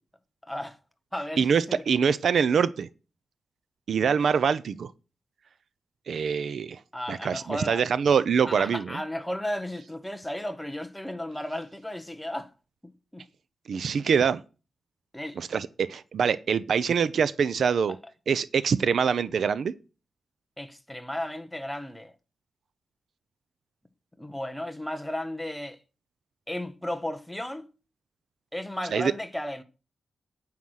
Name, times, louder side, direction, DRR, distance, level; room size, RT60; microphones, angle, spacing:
voice 1, 0.4-0.8 1.1-1.8 6.9-7.8 8.5-12.5 12.8-13.2 15.1-15.4 17.9-18.0 20.6-22.1 24.2-25.8 26.5-27.7 28.5-29.6, left 1 dB, 5° left, 1.1 m, -34 dB
voice 2, 1.4-2.9 3.9-4.9 6.1-6.8 7.1-9.0 13.7-14.4 15.4-18.0 18.3-19.7 28.9-29.1, right 6 dB, 65° right, 0.6 m, -24 dB
9.4 x 9.2 x 6.4 m
wide cardioid pair, 160°, 0 cm